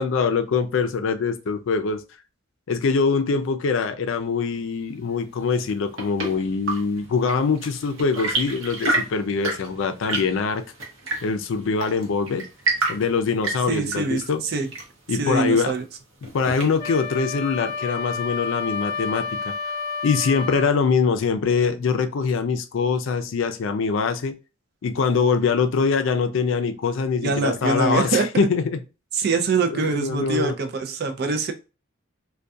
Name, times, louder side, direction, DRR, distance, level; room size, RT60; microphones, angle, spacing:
voice 1, 0.0-2.0 2.7-10.6 11.2-12.4 12.9-14.4 15.1-15.7 16.3-19.5 20.0-24.3 24.8-28.8 29.7-30.5, left 5 dB, 70° left, 7 dB, 0.4 m, -23 dB
Chirp tweet / Engine / Tap, 5.5-17.0, right 2 dB, 70° right, 0.8 m, -31 dB
voice 2, 13.7-14.7 15.2-15.8 27.2-28.3 29.1-31.5, right 4 dB, 50° right, 6 dB, 0.4 m, -24 dB
Wind instrument woodwind instrument, 16.8-20.8, left 5 dB, 15° left, 0.6 m, -30 dB
2.3 x 2.2 x 2.6 m, 0.30 s
head